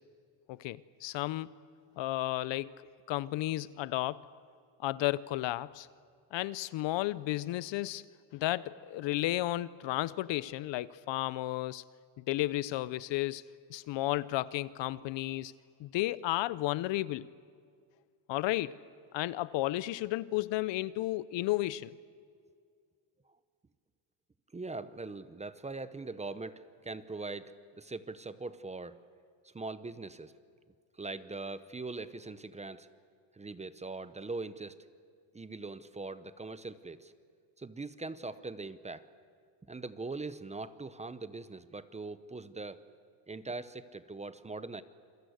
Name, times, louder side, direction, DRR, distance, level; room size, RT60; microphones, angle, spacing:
voice 1, 0.5-1.5 2.0-2.7 3.1-4.3 4.8-5.9 6.3-8.0 8.3-11.8 12.2-13.4 13.7-15.5 15.8-17.3 18.3-18.8 19.1-21.9, left 16 dB, 65° left, 18 dB, 0.8 m, -33 dB
voice 2, 24.5-29.0 29.4-30.3 31.0-32.9 33.3-34.8 35.3-37.1 37.6-39.0 39.7-42.8 43.3-44.8, right 3 dB, 15° right, 13 dB, 0.8 m, -41 dB
28.0 x 22.0 x 8.1 m, 2.1 s
cardioid pair, 125°, 49 cm